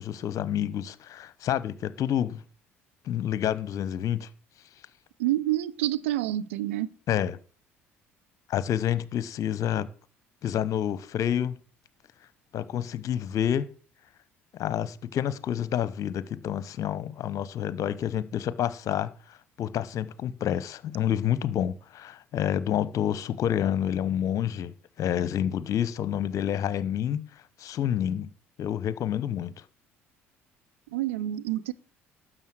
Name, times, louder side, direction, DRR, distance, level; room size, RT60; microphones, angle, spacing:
voice 1, 0.0-2.4 3.0-4.3 7.1-7.4 8.5-9.9 10.4-11.6 12.5-13.7 14.5-19.1 19.6-27.2 27.6-28.3 28.6-29.5, left 10 dB, 55° left, 0.9 m, -28 dB
voice 2, 5.2-6.9 30.9-31.7, right 14 dB, 80° right, 0.6 m, -28 dB
12.5 x 7.8 x 6.3 m
hypercardioid pair, 55°, 7 cm